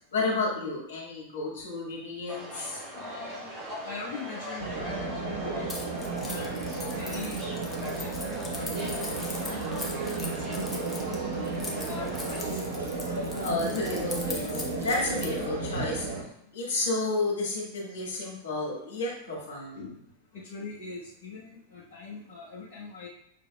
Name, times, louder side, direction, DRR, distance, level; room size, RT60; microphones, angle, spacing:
voice 1, 0.1-2.8 13.4-16.1 16.5-19.8, left 2 dB, 65° left, -4 dB, 1.7 m, -31 dB
sound 1, 2.3-12.4, equal, 25° right, 1.3 m, -41 dB
voice 2, 2.9-3.5 3.8-5.8 6.2-6.6 7.0-11.5 11.9-12.6 19.7-20.0 20.3-23.1, left 3 dB, 45° left, -8 dB, 1.0 m, -42 dB
sound 2, 4.6-16.2, right 3 dB, 70° right, 1.0 m, -33 dB
Keys jangling, 5.7-15.5, left 2 dB, 10° left, 0.8 m, -40 dB
6.0 x 3.3 x 2.2 m, 0.71 s
figure-of-eight pair, 90°, 0 cm